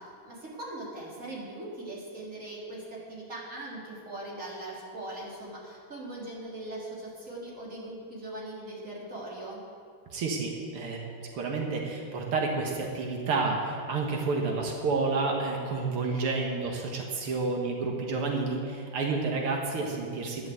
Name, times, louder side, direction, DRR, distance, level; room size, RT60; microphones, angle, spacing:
voice 1, 0.0-9.6, right 1 dB, 35° right, -5 dB, 3.7 m, -40 dB
voice 2, 10.1-11.0 11.3-20.5, right 3 dB, 90° right, 0 dB, 2.3 m, -30 dB
12.0 x 11.0 x 7.7 m, 2.3 s
omnidirectional pair, 2.4 m